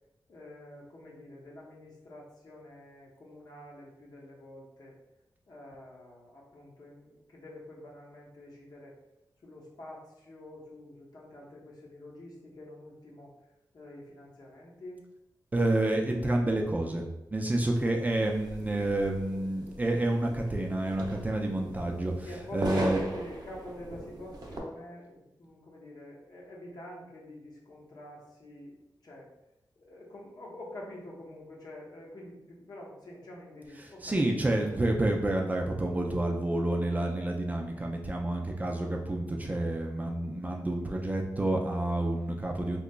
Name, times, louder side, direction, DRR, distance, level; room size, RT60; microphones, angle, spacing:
voice 1, 0.3-4.9 5.5-8.9 9.4-13.3 13.7-15.0 22.2-29.3 29.8-34.3, left 1 dB, 60° left, -3 dB, 0.8 m, -47 dB
voice 2, 15.5-17.1 17.3-22.1 22.5-23.0 34.0-42.8, right 1 dB, 20° right, 1 dB, 0.4 m, -29 dB
sound 1, 18.0-24.6, right 1 dB, 70° right, 0.6 m, -39 dB
3.7 x 2.9 x 2.2 m, 0.93 s
wide cardioid pair, 125°, 7 cm